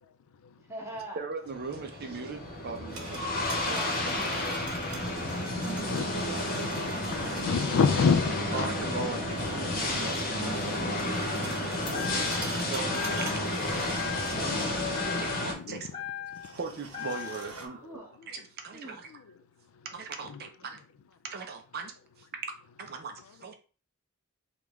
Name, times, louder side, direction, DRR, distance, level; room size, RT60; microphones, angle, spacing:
voice 1, 0.6-1.2 3.6-4.7 9.1-9.5 11.1-11.4 14.2-14.9 17.5-18.1 18.7-19.0, right 1 dB, 15° right, 1.2 m, -45 dB
voice 2, 1.2-3.2 7.3-7.8 8.5-9.4 9.8-11.4 12.3-13.6 15.2-15.9 16.5-17.8 18.3-19.1 19.9-20.8 21.3-23.5, right 5 dB, 45° right, 0.5 m, -39 dB
sound 1, 1.5-15.5, left 1 dB, 45° left, 1.0 m, -31 dB
sound 2, 2.6-7.8 9.3-15.0 15.2-15.3 16.3-17.7, right 4 dB, 80° right, 0.9 m, -45 dB
voice 3, 5.4-6.2 6.5-8.7 9.9-10.1 15.7-15.8, left 5 dB, 65° left, 0.3 m, -28 dB
sound 3, 11.9-12.6 12.9-13.6 13.9-14.6 14.9-16.6 16.9-17.6, left 10 dB, 25° left, 0.7 m, -38 dB
5.1 x 2.4 x 3.1 m
head